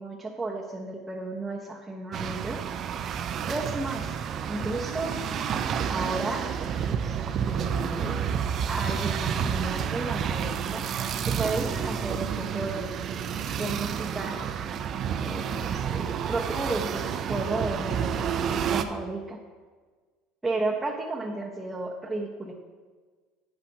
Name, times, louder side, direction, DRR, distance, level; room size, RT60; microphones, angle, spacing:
voice 1, 0.0-2.6 3.5-4.1 4.5-5.1 5.9-6.5 6.8-7.2 7.4-8.4 8.7-10.8 11.2-12.9 13.6-14.5 15.2-19.4 20.4-22.5, right 2 dB, 10° right, -5 dB, 1.1 m, -33 dB
sound 1, 2.1-18.8, right 7 dB, 45° right, 0.6 m, -30 dB
11.0 x 8.9 x 2.8 m, 1.4 s
supercardioid pair, 105°, 0 cm